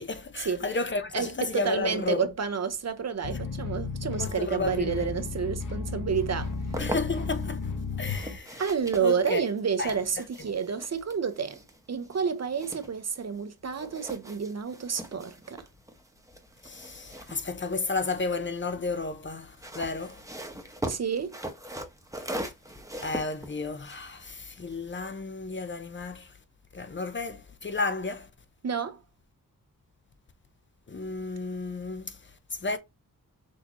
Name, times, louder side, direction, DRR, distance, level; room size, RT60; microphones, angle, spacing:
voice 1, 0.0-2.3 4.2-5.1 6.8-7.6 8.0-8.6 9.0-9.5 9.8-9.9 16.6-20.2 23.0-26.3 26.7-28.3 30.9-32.1 32.6-32.8, left 3 dB, 30° left, 0.7 m, -32 dB
voice 2, 1.1-6.5 8.6-11.6 11.9-15.7 20.9-21.4 28.6-29.0, right 6 dB, 45° right, 0.8 m, -29 dB
sound 1, 3.2-8.4, left 4 dB, 60° left, 0.9 m, -34 dB
sound 2, 6.3-7.5 8.0-13.4 13.7-18.4 19.4-24.9, right 1 dB, 10° right, 1.0 m, -41 dB
6.3 x 2.8 x 2.9 m
wide cardioid pair, 90°, 36 cm